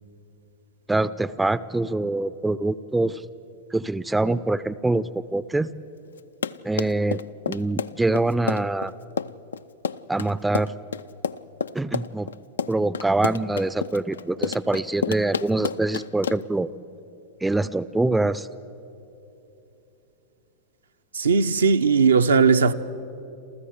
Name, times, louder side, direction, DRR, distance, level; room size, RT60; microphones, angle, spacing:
voice 1, 0.9-3.2 3.7-5.7 6.6-7.2 7.5-8.9 10.1-10.7 11.7-12.3 12.7-16.7 17.4-18.5, right 2 dB, 5° right, 0.5 m, -24 dB
Run, 6.2-16.6, left 6 dB, 70° left, 0.4 m, -30 dB
voice 2, 21.1-22.7, right 5 dB, 70° right, 0.6 m, -18 dB
28.0 x 14.0 x 8.1 m
figure-of-eight pair, 90°, 0 cm